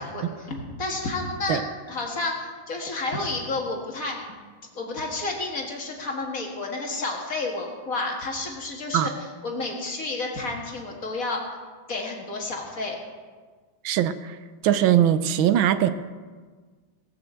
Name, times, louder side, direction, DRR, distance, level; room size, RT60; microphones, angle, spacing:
voice 1, 0.0-1.6 1.9-4.2 4.7-9.1 9.4-11.4 11.9-13.0, left 2 dB, 45° left, 0 dB, 2.1 m, -30 dB
voice 2, 13.8-14.4 14.6-15.9, right 10 dB, 75° right, 12 dB, 1.4 m, -21 dB
18.0 x 6.3 x 7.6 m, 1.5 s
omnidirectional pair, 2.3 m